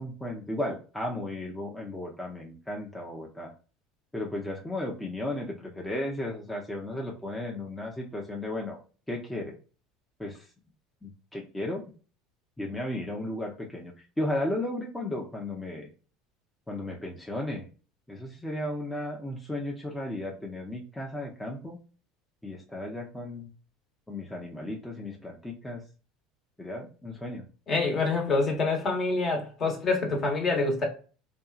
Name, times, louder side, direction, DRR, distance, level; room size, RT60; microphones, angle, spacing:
voice 1, 0.0-3.5 4.1-8.8 9.1-9.6 10.2-10.5 11.0-11.8 12.6-15.9 16.7-17.7 18.1-21.8 22.4-23.5 24.1-25.8 26.6-27.4, left 1 dB, 5° left, 0.6 m, -34 dB
voice 2, 27.7-30.9, left 3 dB, 35° left, 1.1 m, -26 dB
2.7 x 2.3 x 2.3 m
hypercardioid pair, 85°, 0 cm